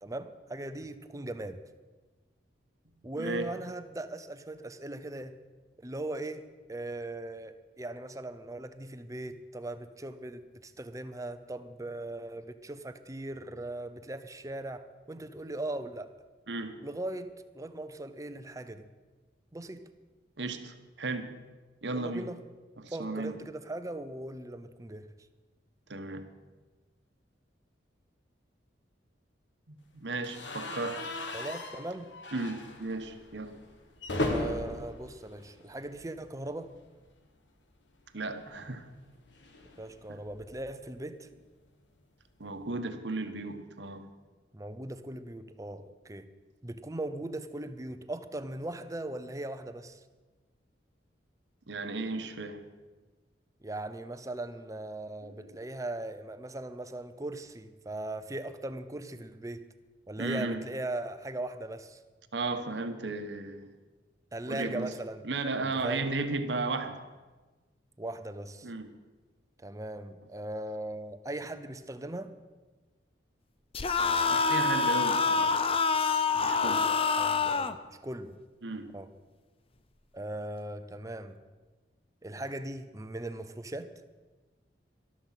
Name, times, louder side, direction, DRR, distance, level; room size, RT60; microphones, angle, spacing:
voice 1, 0.0-1.6 3.0-5.4 5.8-6.4 6.7-16.1 16.8-18.8 19.5-19.9 21.9-22.4 22.9-25.1 31.3-32.1 34.3-36.7 39.8-41.3 44.5-46.3 46.6-50.0 53.6-59.7 60.1-62.0 64.3-65.3 65.6-66.1 68.0-68.7 69.6-72.4 76.3-77.8 78.0-78.4 78.9-79.1 80.1-81.4 82.2-83.9, right 1 dB, 20° right, 11 dB, 0.7 m, -39 dB
voice 2, 3.2-3.5 16.5-16.8 20.4-21.4 21.8-22.3 22.8-23.4 25.9-26.3 29.7-31.1 32.3-33.6 38.1-38.9 40.1-40.2 42.4-44.1 51.7-52.6 55.3-55.4 60.2-60.6 62.3-63.7 64.5-64.9 65.2-67.0 68.6-69.0 74.3-75.6 76.4-76.9 78.6-79.0, right 3 dB, 80° right, 8 dB, 1.2 m, -35 dB
sound 1, 30.2-36.3 36.6-36.8 37.0-37.1 38.4-40.7, left 2 dB, 85° left, 1.7 m, -38 dB
sound 2, 73.7-77.8, left 4 dB, 30° left, 0.5 m, -26 dB
13.5 x 12.5 x 5.8 m, 1.3 s
head